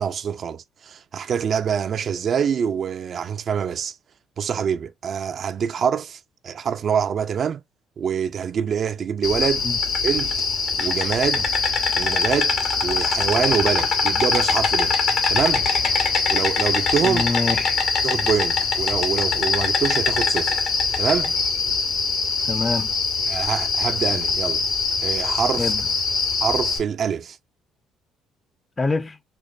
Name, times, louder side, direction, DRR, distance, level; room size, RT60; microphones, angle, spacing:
voice 1, 0.0-4.0 4.4-7.6 8.0-9.7 10.0-10.3 10.8-11.5 12.0-12.6 12.8-14.9 15.3-15.7 16.3-17.2 18.0-20.6 21.0-21.3 23.3-24.6 25.0-25.7 26.4-27.4, right 7 dB, 55° right, 0.3 m, -25 dB
Insect, 9.2-26.8, left 4 dB, 70° left, 1.0 m, -22 dB
voice 2, 17.0-17.8 22.5-22.9 25.6-25.8 28.8-29.2, left 3 dB, 25° left, 0.4 m, -25 dB
4.5 x 2.2 x 2.5 m
supercardioid pair, 70°, 0 cm